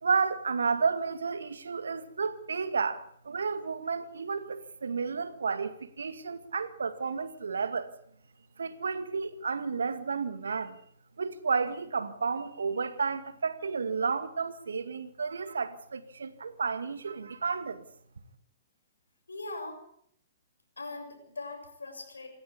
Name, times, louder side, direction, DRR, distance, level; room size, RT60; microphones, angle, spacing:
voice 1, 0.0-7.9 8.6-10.8 11.2-17.8, right 5 dB, 75° right, 2.1 m, -32 dB
voice 2, 19.3-19.8 20.8-22.3, left 2 dB, 80° left, 6.9 m, -40 dB
27.0 x 14.0 x 8.4 m
figure-of-eight pair, 120°, 0 cm